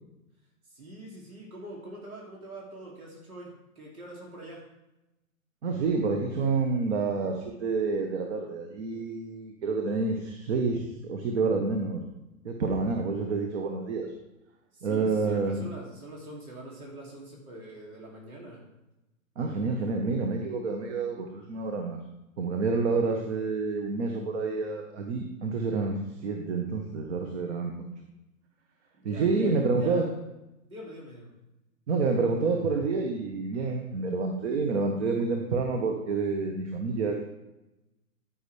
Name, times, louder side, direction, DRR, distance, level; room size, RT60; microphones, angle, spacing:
voice 1, 0.6-4.7 14.7-18.6 29.0-30.1 30.7-31.3, right 1 dB, 85° right, -3 dB, 2.8 m, -44 dB
voice 2, 5.6-12.0 12.4-14.1 14.8-15.6 19.4-22.0 22.4-27.7 29.0-30.0 31.9-37.2, right 4 dB, 50° right, 3 dB, 1.2 m, -28 dB
13.0 x 5.7 x 3.3 m, 0.95 s
hypercardioid pair, 135°, 43 cm